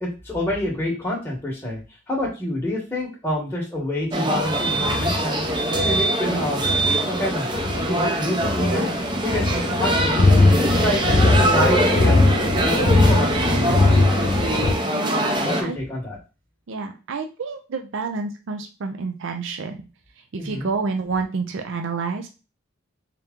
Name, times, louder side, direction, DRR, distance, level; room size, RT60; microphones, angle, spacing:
voice 1, 0.0-1.8 2.1-5.4 5.8-6.6 7.1-7.5 7.8-8.9 9.2-9.5 9.8-12.3 12.6-14.0 15.4-16.2 20.4-20.7, left 1 dB, 10° left, -3 dB, 1.0 m, -27 dB
sound 1, 4.1-15.6, right 1 dB, 25° right, 0.6 m, -23 dB
sound 2, 4.3-14.7, left 2 dB, 45° left, 0.6 m, -21 dB
voice 2, 14.9-15.8 16.7-19.8 20.3-22.2, right 4 dB, 65° right, 5 dB, 0.5 m, -29 dB
3.7 x 2.8 x 3.5 m, 0.31 s
head